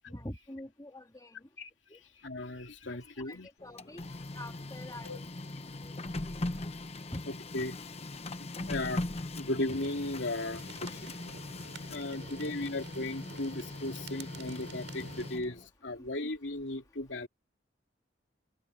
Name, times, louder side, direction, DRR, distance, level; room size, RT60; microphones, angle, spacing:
voice 1, 0.1-1.4 1.9-2.0 3.3-4.0 4.4-5.9 6.6-6.7 7.1-7.2 12.1-12.7 16.0-16.1, left 1 dB, 20° left, 2.5 m, -46 dB
voice 2, 2.2-3.5 5.0-5.2 7.3-7.8 8.7-9.0 9.3-11.1 11.9-17.3, left 2 dB, 80° left, 2.8 m, -36 dB
Printer, 3.6-15.7, left 2 dB, 35° left, 1.0 m, -40 dB
sound 1, 9.7-15.3, right 3 dB, 80° right, 6.5 m, -50 dB
open air
head